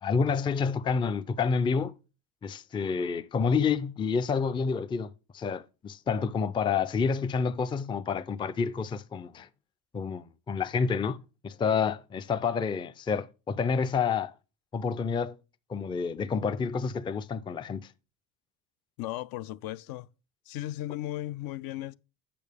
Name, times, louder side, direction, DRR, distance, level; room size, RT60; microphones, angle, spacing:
voice 1, 0.0-1.9 2.4-9.5 9.9-11.2 11.4-14.3 14.7-15.4 15.7-17.8, left 5 dB, 15° left, 0.3 m, -29 dB
voice 2, 19.0-20.1 20.5-22.0, left 15 dB, 70° left, 0.5 m, -36 dB
8.5 x 6.4 x 3.5 m
cardioid pair, 110°, 38 cm